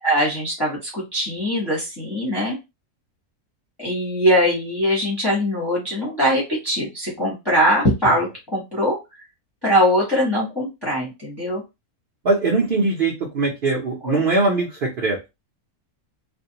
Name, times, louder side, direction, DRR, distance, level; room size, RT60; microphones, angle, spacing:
voice 1, 0.0-2.6 3.8-9.0 9.6-11.6 14.0-14.2, equal, 20° left, -2 dB, 0.7 m, -21 dB
voice 2, 12.2-15.2, right 3 dB, 55° right, -3 dB, 0.6 m, -21 dB
2.5 x 2.2 x 2.7 m, 0.24 s
omnidirectional pair, 1.6 m